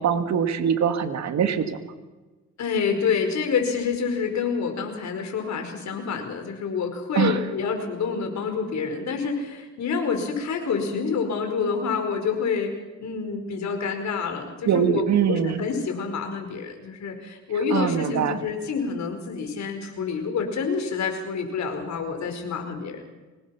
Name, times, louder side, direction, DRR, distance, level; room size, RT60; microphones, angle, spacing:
voice 1, 0.0-1.8 7.2-7.4 14.7-15.6 17.7-18.4, right 8 dB, 65° right, 8 dB, 2.0 m, -23 dB
voice 2, 2.6-12.7 13.0-23.0, left 5 dB, 65° left, 5 dB, 5.0 m, -27 dB
24.5 x 19.5 x 6.0 m, 1.2 s
cardioid pair, 90°, 30 cm